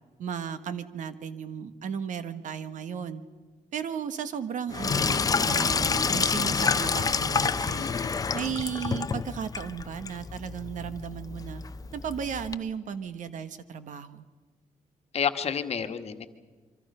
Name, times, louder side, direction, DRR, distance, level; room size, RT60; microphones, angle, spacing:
voice 1, 0.2-3.2 3.7-7.9 8.3-11.6 11.9-14.2, right 7 dB, 65° right, 11 dB, 1.4 m, -35 dB
Sink (filling or washing), 4.7-12.5, left 5 dB, 25° left, 0.6 m, -28 dB
voice 2, 7.8-8.1 15.1-16.3, left 7 dB, 50° left, 8 dB, 1.5 m, -30 dB
26.5 x 24.5 x 5.6 m, 1.4 s
cardioid pair, 125°, 14 cm